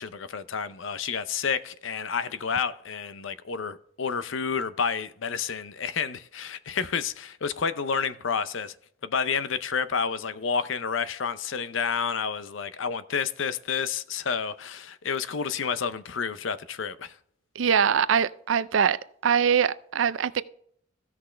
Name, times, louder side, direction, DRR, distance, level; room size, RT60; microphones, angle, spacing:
voice 1, 0.0-8.7 9.0-17.2, left 6 dB, 75° left, 0.6 m, -30 dB
voice 2, 17.6-20.4, right 7 dB, 75° right, 0.5 m, -23 dB
15.0 x 6.1 x 3.3 m
head